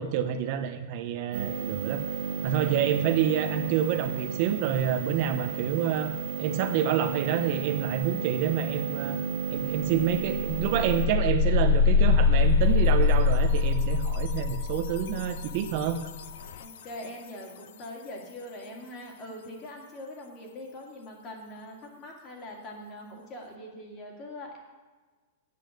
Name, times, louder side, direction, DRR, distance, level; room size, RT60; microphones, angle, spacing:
voice 1, 0.0-2.0 2.4-9.2 9.5-16.0, right 9 dB, 45° right, 7 dB, 0.7 m, -28 dB
sound 1, 1.3-11.1, right 6 dB, 80° right, 1.7 m, -33 dB
sound 2, 9.6-9.7 10.0-16.8, left 5 dB, 65° left, 0.7 m, -24 dB
voice 2, 16.6-24.6, left 1 dB, 25° left, -1 dB, 2.4 m, -42 dB
8.5 x 8.4 x 6.5 m, 1.3 s
supercardioid pair, 160°, 0 cm